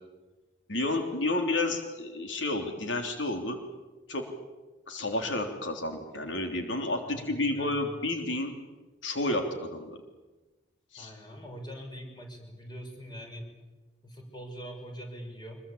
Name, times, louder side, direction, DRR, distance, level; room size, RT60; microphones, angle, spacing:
voice 1, 0.7-3.6 4.1-4.2 4.9-8.5 9.0-10.0 10.9-11.1, left 2 dB, 85° left, 4 dB, 3.5 m, -31 dB
voice 2, 7.0-7.9 11.0-13.5 14.0-15.6, equal, 25° left, 3 dB, 6.1 m, -43 dB
25.5 x 22.0 x 8.7 m, 1.2 s
head